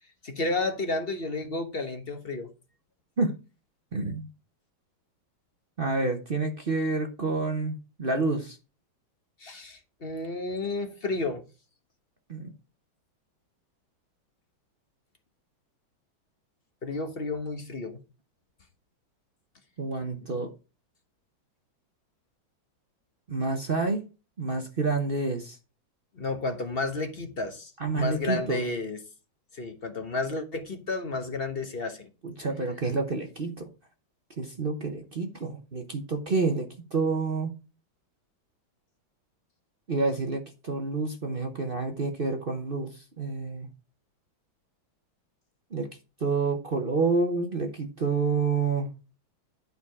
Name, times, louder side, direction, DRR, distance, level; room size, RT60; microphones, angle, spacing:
voice 1, 0.2-2.5 9.4-11.4 16.8-18.0 26.1-29.0 29.5-32.1, left 2 dB, 35° left, 1.1 m, -32 dB
voice 2, 3.9-4.3 5.8-8.6 12.3-12.5 19.8-20.5 23.3-24.0 24.4-25.6 27.8-28.6 32.2-33.7 34.4-37.5 39.9-43.7 45.7-45.9 46.2-48.9, right 3 dB, 40° right, 0.8 m, -28 dB
11.0 x 4.9 x 4.7 m
omnidirectional pair, 2.2 m